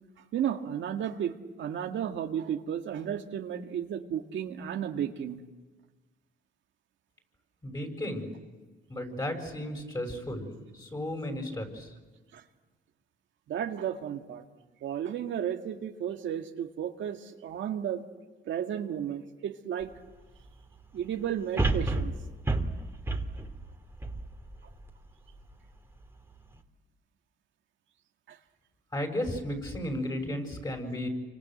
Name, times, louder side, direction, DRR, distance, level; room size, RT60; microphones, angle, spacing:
voice 1, 0.3-5.4 12.3-12.4 13.5-14.4 14.8-18.0 18.5-19.9 20.9-22.1 28.3-28.4, right 9 dB, 70° right, 4 dB, 1.9 m, -33 dB
voice 2, 7.6-8.3 8.9-11.9 28.9-31.1, left 1 dB, 20° left, 4 dB, 7.1 m, -34 dB
sound 1, 19.8-19.9 21.6-24.9 25.4-25.5, right 2 dB, 10° right, 3.0 m, -30 dB
28.5 x 25.0 x 7.9 m, 1.3 s
cardioid pair, 90°, 20 cm